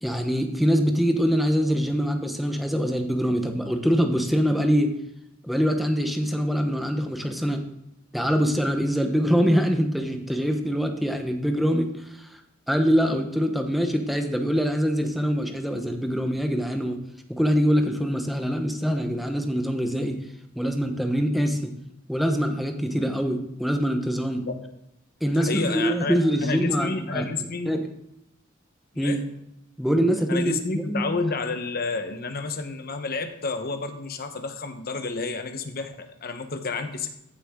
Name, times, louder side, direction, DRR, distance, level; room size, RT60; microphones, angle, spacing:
voice 1, 0.0-4.9 5.4-7.6 8.1-12.3 12.7-17.0 17.3-20.2 20.6-21.7 22.1-24.5 25.2-27.2 27.7-27.9 29.0-29.2 29.8-31.1, equal, ahead, 4 dB, 1.0 m, -24 dB
voice 2, 25.3-26.2 26.4-27.8 28.9-29.2 30.3-37.1, left 4 dB, 50° left, 7 dB, 1.1 m, -30 dB
14.5 x 6.7 x 3.7 m, 0.80 s
head